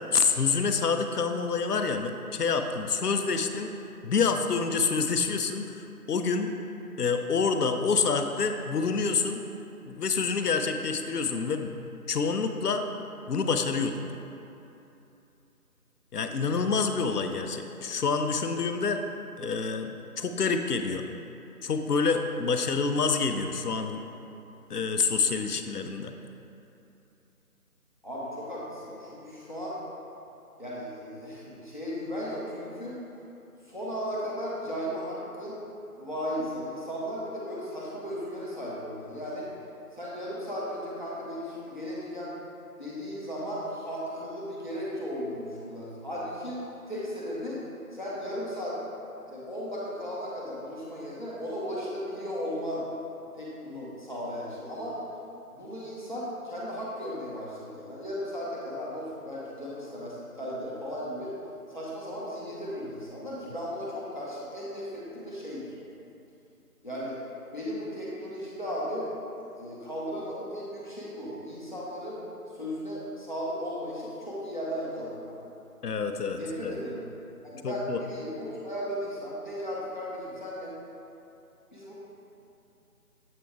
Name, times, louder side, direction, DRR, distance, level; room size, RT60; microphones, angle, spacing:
voice 1, 0.1-3.7 4.0-6.5 7.0-9.4 9.9-11.7 12.1-12.9 13.3-14.0 16.1-19.0 19.4-21.1 21.6-24.0 24.7-26.1 75.8-76.7 77.6-78.0, left 5 dB, 80° left, 6 dB, 0.6 m, -27 dB
voice 2, 28.0-29.8 30.6-33.0 33.7-35.6 36.0-39.5 39.9-42.3 42.8-46.6 46.9-47.6 47.9-48.8 49.3-52.8 53.4-55.0 55.5-61.3 61.7-65.7 66.8-67.2 67.5-69.1 69.6-72.2 72.5-75.3 76.3-77.0 77.4-80.7 81.7-82.0, equal, 30° left, -7 dB, 0.9 m, -36 dB
7.6 x 3.3 x 4.4 m, 2.8 s
figure-of-eight pair, 170°, 46 cm